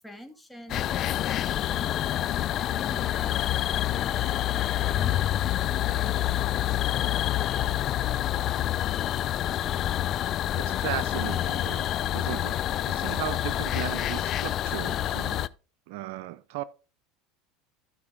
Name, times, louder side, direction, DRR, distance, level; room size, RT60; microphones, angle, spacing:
voice 1, 0.0-2.1 2.6-6.7, left 1 dB, 5° left, 2.2 m, -46 dB
sound 1, 0.7-15.5, left 12 dB, 45° left, 0.4 m, -27 dB
voice 2, 10.6-15.4 15.9-16.6, right 15 dB, 70° right, 0.5 m, -36 dB
13.5 x 5.1 x 3.7 m
hypercardioid pair, 85°, 0 cm